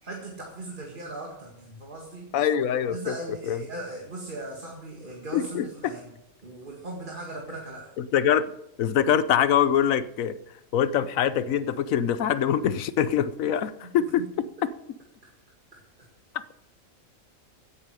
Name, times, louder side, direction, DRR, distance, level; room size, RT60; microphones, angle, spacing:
voice 1, 0.0-2.3 2.9-6.1 6.4-7.9 13.8-14.3 15.2-15.3 15.7-15.8, right 2 dB, 35° right, -1 dB, 2.1 m, -39 dB
voice 2, 2.3-3.1 3.4-3.6 5.3-5.9 8.0-8.4 8.8-10.4 10.7-14.2, left 9 dB, 75° left, 14 dB, 1.1 m, -24 dB
15.0 x 10.5 x 4.8 m, 0.81 s
omnidirectional pair, 1.5 m